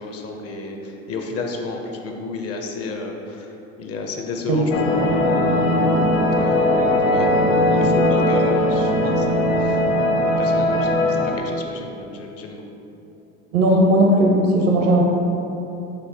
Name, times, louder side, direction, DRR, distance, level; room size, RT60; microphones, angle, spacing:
voice 1, 0.0-5.5 6.3-9.8 10.2-12.6, left 3 dB, 40° left, 3 dB, 0.6 m, -32 dB
sound 1, 4.7-11.4, left 1 dB, 90° left, 0.5 m, -19 dB
voice 2, 13.5-15.0, right 1 dB, 75° right, 0 dB, 0.9 m, -16 dB
4.6 x 2.6 x 3.9 m, 2.9 s
hypercardioid pair, 75°, 40 cm